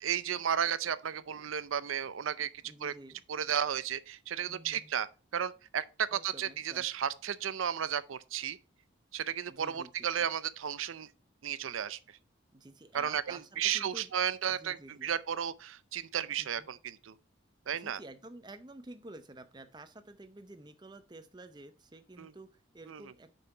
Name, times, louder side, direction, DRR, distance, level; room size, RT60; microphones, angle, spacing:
voice 1, 0.0-2.5 2.8-2.9 3.3-5.1 5.3-8.6 9.1-11.1 11.4-12.0 12.9-14.8 15.0-17.2 17.7-18.0 22.2-22.3 22.9-23.0, right 9 dB, 85° right, 0.5 m, -33 dB
voice 2, 2.6-3.2 4.5-4.9 6.1-6.9 9.5-10.3 12.5-14.1 14.5-15.1 16.4-16.7 17.7-23.3, right 2 dB, 20° right, 0.6 m, -51 dB
6.7 x 5.6 x 4.5 m
head